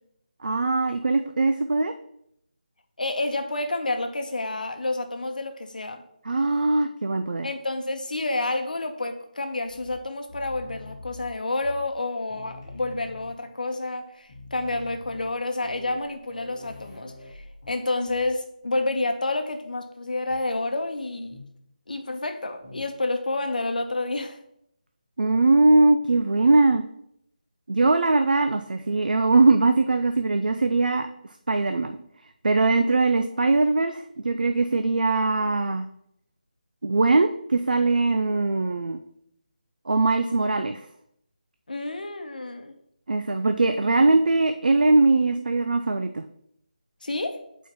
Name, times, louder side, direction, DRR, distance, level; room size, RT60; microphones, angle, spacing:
voice 1, 0.4-1.9 6.2-7.5 25.2-26.8 27.7-31.1 31.5-31.9 32.4-35.8 36.8-39.0 39.9-40.8 43.1-46.2, right 3 dB, 70° right, 7 dB, 0.4 m, -21 dB
voice 2, 3.0-6.0 7.4-21.4 21.9-24.4 41.7-42.7 47.0-47.4, left 2 dB, 65° left, 5 dB, 0.9 m, -29 dB
sound 1, 9.6-12.0 12.3-13.6 14.0-14.1 14.2-18.4 18.6-18.9 20.3-20.5 21.3-21.7 22.6-23.0, left 2 dB, 20° left, 1.2 m, -45 dB
8.0 x 4.5 x 3.0 m, 0.75 s
figure-of-eight pair, 180°, 5 cm